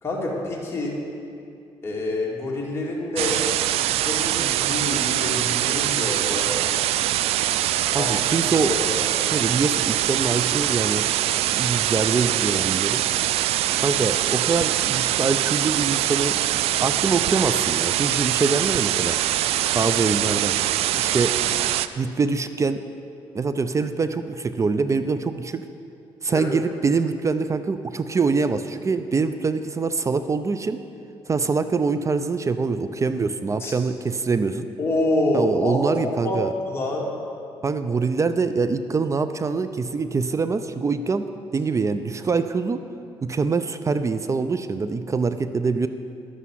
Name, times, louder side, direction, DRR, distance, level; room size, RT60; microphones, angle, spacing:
voice 1, 0.0-1.0 1.8-3.4 3.8-6.5 7.9-8.1 8.6-9.1 26.3-26.6 33.6-33.7 34.8-37.1, left 1 dB, 25° left, -4 dB, 2.5 m, -27 dB
sound 1, 3.2-21.9, right 13 dB, 85° right, 0.4 m, -23 dB
voice 2, 7.9-8.7 9.3-11.1 11.5-13.0 13.8-16.3 16.8-19.4 19.7-20.6 21.0-21.3 22.0-22.8 23.3-25.6 26.2-30.8 31.3-34.7 35.3-36.5 37.6-42.8 43.2-45.9, right 4 dB, 30° right, 11 dB, 0.5 m, -24 dB
11.0 x 8.3 x 7.5 m, 2.5 s
cardioid pair, 90°, 10 cm